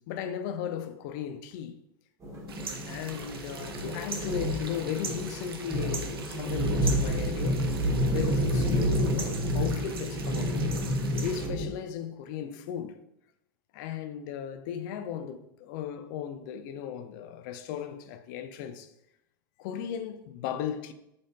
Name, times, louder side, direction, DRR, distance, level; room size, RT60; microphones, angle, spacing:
voice 1, 0.0-1.8 2.9-7.7 8.1-10.6 11.2-13.0 13.7-18.9 19.6-20.9, left 9 dB, 55° left, 0.4 m, -36 dB
sound 1, 2.2-11.7, equal, 25° right, 1.3 m, -29 dB
sound 2, 2.5-11.5, right 5 dB, 85° right, 0.5 m, -42 dB
3.8 x 3.3 x 2.5 m
hypercardioid pair, 90°, 12 cm